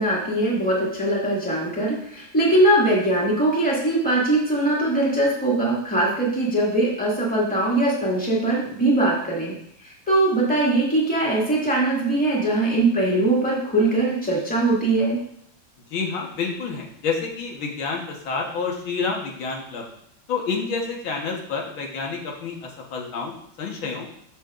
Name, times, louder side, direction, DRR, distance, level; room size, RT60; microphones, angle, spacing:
voice 1, 0.0-9.6 10.1-15.2, right 2 dB, 5° left, -5 dB, 2.0 m, -21 dB
voice 2, 15.9-19.8 20.3-24.1, left 5 dB, 80° left, 0 dB, 2.1 m, -29 dB
13.5 x 5.7 x 2.5 m, 0.69 s
omnidirectional pair, 2.2 m